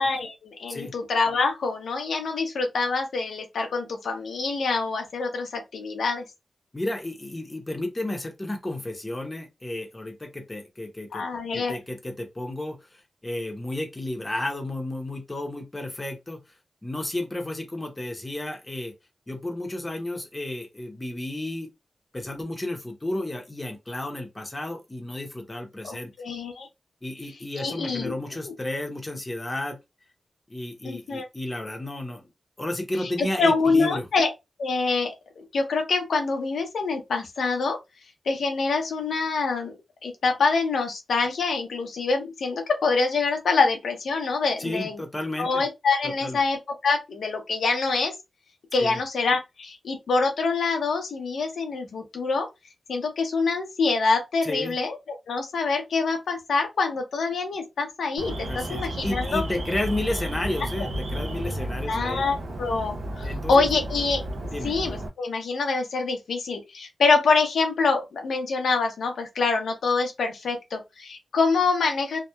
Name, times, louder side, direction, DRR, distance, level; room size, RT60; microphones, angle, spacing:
voice 1, 0.0-6.2 11.1-11.7 25.8-26.7 27.6-28.1 28.4-28.5 30.8-31.3 33.2-34.3 34.6-37.8 38.3-45.0 45.4-46.6 46.8-48.1 48.7-52.5 52.9-59.4 60.7-60.9 61.5-61.6 61.9-64.2 64.6-72.2, left 4 dB, 85° left, 0.7 m, -25 dB
voice 2, 6.7-11.2 11.5-16.4 16.8-18.9 19.3-21.7 22.1-26.1 27.0-29.8 30.5-32.3 32.6-34.1 44.6-45.6 46.0-46.4 48.8-49.0 54.4-54.8 58.4-62.2 63.2-63.7 64.5-64.7, left 1 dB, 20° left, 0.7 m, -32 dB
Alarm, 58.2-65.1, equal, 80° right, 0.8 m, -32 dB
2.8 x 2.1 x 2.2 m
wide cardioid pair, 85°, 0 cm